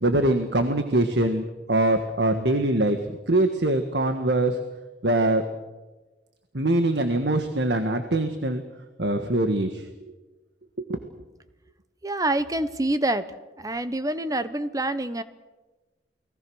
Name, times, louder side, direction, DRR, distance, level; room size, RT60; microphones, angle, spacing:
voice 1, 0.0-4.6 5.0-5.4 6.5-8.6 9.0-9.9 10.9-11.0, right 1 dB, 70° right, 7 dB, 1.7 m, -23 dB
voice 2, 12.0-13.2 13.6-15.2, right 1 dB, 20° right, 12 dB, 1.0 m, -26 dB
29.5 x 20.0 x 6.4 m, 1.2 s
head